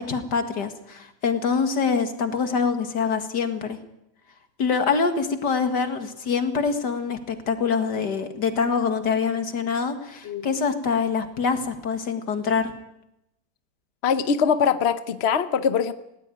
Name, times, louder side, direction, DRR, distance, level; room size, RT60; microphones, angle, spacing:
voice 1, 0.0-3.8 4.6-12.7, left 5 dB, 75° left, 8 dB, 2.4 m, -25 dB
voice 2, 14.0-15.9, left 6 dB, 45° left, 11 dB, 1.0 m, -22 dB
19.5 x 18.0 x 9.2 m, 0.83 s
omnidirectional pair, 1.8 m